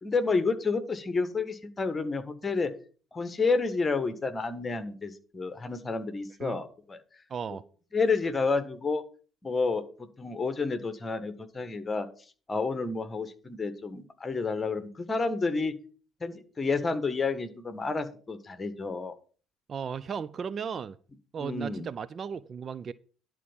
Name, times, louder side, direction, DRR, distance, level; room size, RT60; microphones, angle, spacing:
voice 1, 0.0-2.7 3.1-7.0 7.9-9.0 9.4-12.1 12.5-15.7 16.2-19.1 21.4-21.9, left 4 dB, 25° left, 9 dB, 1.5 m, -30 dB
voice 2, 7.3-7.6 19.7-21.0 21.3-22.9, right 6 dB, 40° right, 15 dB, 0.4 m, -35 dB
11.0 x 4.5 x 7.1 m, 0.40 s
figure-of-eight pair, 50°, 0 cm